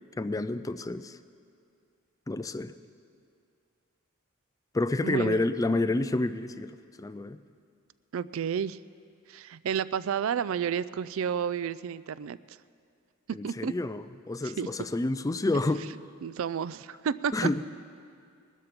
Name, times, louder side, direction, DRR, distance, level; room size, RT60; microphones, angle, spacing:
voice 1, 0.2-1.2 2.3-2.7 4.7-6.7 7.0-7.4 13.3-15.8 17.3-17.6, left 2 dB, 15° left, 12 dB, 0.4 m, -29 dB
voice 2, 5.0-5.5 8.1-8.8 9.3-12.6 13.4-13.7 14.4-14.7 16.2-17.5, right 7 dB, 70° right, 17 dB, 0.4 m, -31 dB
20.0 x 13.0 x 5.2 m, 2.3 s
head